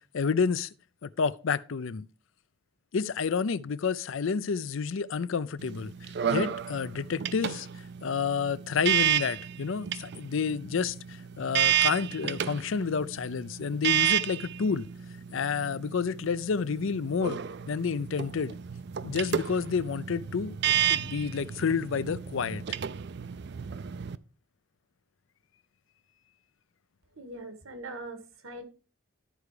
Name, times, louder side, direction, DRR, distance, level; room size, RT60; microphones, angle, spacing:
voice 1, 0.1-0.7 1.0-2.1 2.9-7.7 8.0-14.9 15.3-17.4 17.7-18.6 19.0-22.6, left 5 dB, 70° left, 0.5 m, -30 dB
sound 1, 5.6-24.2, right 10 dB, 55° right, 0.4 m, -31 dB
voice 2, 27.2-28.6, right 2 dB, 85° right, 1.8 m, -41 dB
13.0 x 4.7 x 4.9 m
head